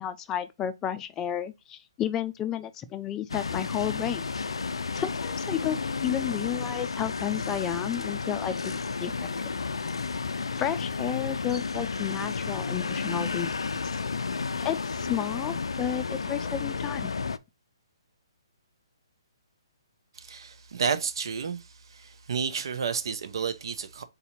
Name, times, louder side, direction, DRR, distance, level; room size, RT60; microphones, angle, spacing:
voice 1, 0.0-4.3 5.0-9.5 10.6-13.5 13.8-14.0 14.6-17.1, left 10 dB, 15° left, 0.4 m, -32 dB
sound 1, 3.3-17.4, left 4 dB, 85° left, 0.3 m, -32 dB
voice 2, 20.2-24.0, right 6 dB, 65° right, 0.7 m, -31 dB
4.0 x 2.8 x 4.1 m
hypercardioid pair, 140°, 3 cm